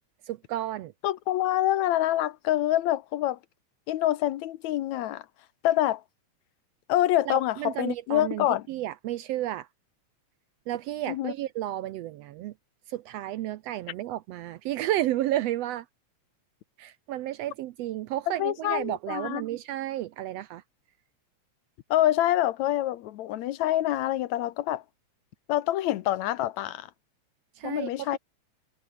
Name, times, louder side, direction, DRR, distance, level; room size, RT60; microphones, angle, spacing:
voice 1, 0.3-0.9 7.3-9.7 10.7-12.5 12.9-15.8 16.8-20.6 27.6-28.2, right 14 dB, 75° right, 1.6 m, -32 dB
voice 2, 1.0-3.4 3.9-5.2 5.6-6.0 6.9-8.7 11.1-11.3 18.4-19.4 21.9-24.8 25.5-26.9 27.6-28.2, left 14 dB, 75° left, 2.2 m, -26 dB
omnidirectional pair, 3.4 m